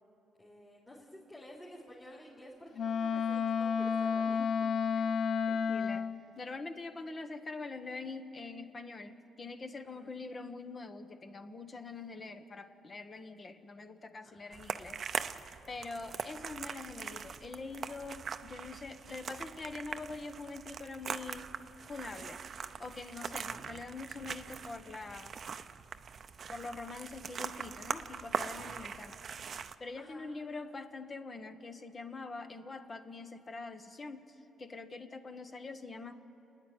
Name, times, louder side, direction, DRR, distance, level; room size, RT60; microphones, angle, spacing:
voice 1, 0.4-4.4 9.8-10.2 14.2-14.7 30.0-30.3, left 1 dB, 15° left, -5 dB, 3.1 m, -52 dB
Wind instrument woodwind instrument, 2.7-6.2, left 6 dB, 60° left, 0.5 m, -31 dB
voice 2, 5.5-15.0 15.7-21.5 21.9-22.4 22.8-25.4 26.5-29.2 29.8-36.1, left 3 dB, 35° left, 9 dB, 1.3 m, -44 dB
sound 1, 14.5-29.8, right 6 dB, 50° right, 0.6 m, -42 dB
29.5 x 9.9 x 9.3 m, 2.9 s
cardioid pair, 90°, 0 cm